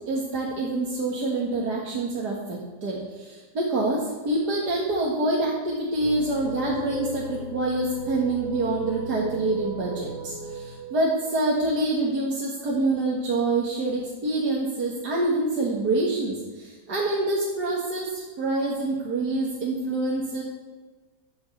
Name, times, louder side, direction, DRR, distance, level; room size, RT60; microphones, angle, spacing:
voice 1, 0.1-20.4, right 2 dB, 65° right, -4 dB, 2.4 m, -26 dB
sound 1, 6.0-12.2, right 2 dB, 85° right, 2.9 m, -36 dB
11.0 x 8.8 x 7.2 m, 1.3 s
omnidirectional pair, 1.9 m